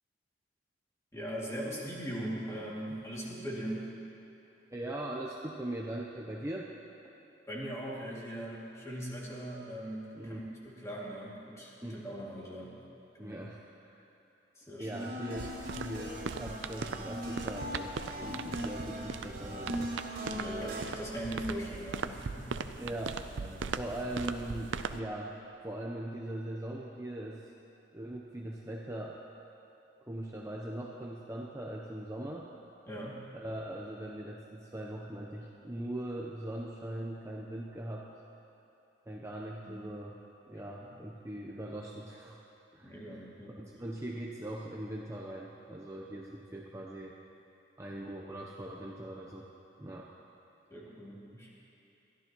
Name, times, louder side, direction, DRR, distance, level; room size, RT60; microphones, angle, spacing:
voice 1, 1.1-3.9 7.5-12.7 13.2-13.4 14.6-14.9 20.3-22.6 23.4-23.8 32.9-33.2 39.6-39.8 40.8-40.9 42.8-43.6 50.7-51.5, right 1 dB, 15° left, -6 dB, 2.4 m, -40 dB
voice 2, 4.7-6.7 10.1-10.4 11.8-12.0 13.2-14.0 14.8-19.9 20.2-20.3 22.8-23.2 23.7-25.3 25.6-27.4 27.9-29.2 30.0-32.5 33.3-38.1 39.1-40.2 40.5-42.4 42.7-43.3 43.5-47.1 47.8-49.5 49.8-50.1, right 1 dB, 15° right, -2 dB, 0.7 m, -40 dB
sound 1, 14.9-20.8, equal, 50° right, 2.8 m, -40 dB
sound 2, 15.4-25.0, right 5 dB, 85° right, 0.5 m, -40 dB
22.0 x 14.0 x 3.0 m, 3.0 s
head